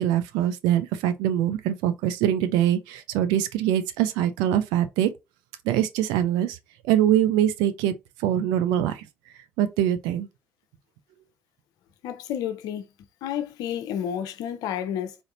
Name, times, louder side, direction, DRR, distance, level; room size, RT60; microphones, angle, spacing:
voice 1, 0.0-5.1 5.7-6.6 6.8-7.9 8.2-9.0 9.6-10.3, right 11 dB, 75° right, 0.6 m, -23 dB
voice 2, 12.0-12.9 13.2-15.2, left 9 dB, 70° left, 0.7 m, -30 dB
3.8 x 3.5 x 2.6 m
hypercardioid pair, 50°, 7 cm